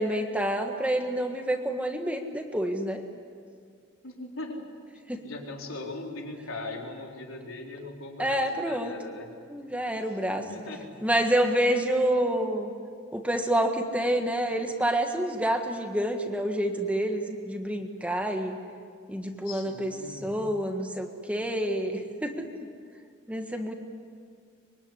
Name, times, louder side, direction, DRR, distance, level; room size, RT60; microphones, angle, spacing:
voice 1, 0.0-3.0 5.1-5.2 8.2-8.9 9.5-10.4 11.0-12.7 13.1-18.5 19.1-19.9 20.2-22.5 23.3-23.8, right 1 dB, 5° right, 4 dB, 1.6 m, -28 dB
voice 2, 4.0-4.7 5.2-9.4 10.4-11.1 19.4-20.3, left 2 dB, 80° left, 0 dB, 4.3 m, -40 dB
24.5 x 23.0 x 9.9 m, 2.2 s
head